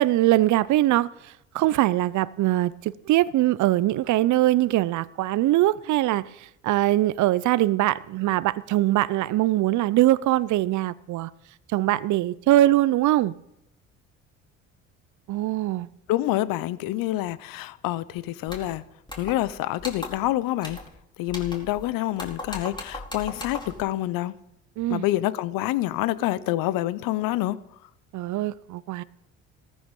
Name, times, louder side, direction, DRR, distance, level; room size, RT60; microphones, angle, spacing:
voice 1, 0.0-11.3 11.7-13.4 15.3-15.9 24.8-25.1 28.1-29.0, right 15 dB, 50° right, 0.7 m, -22 dB
voice 2, 16.1-18.8 19.2-20.8 21.2-24.3 24.9-27.6, left 15 dB, 65° left, 0.9 m, -27 dB
sound 1, 18.5-18.7 19.1-19.5 19.8-20.3 20.6-20.9 21.3-21.8 22.2-23.8, left 1 dB, 10° left, 4.5 m, -38 dB
15.5 x 14.0 x 5.4 m
hypercardioid pair, 60°, 37 cm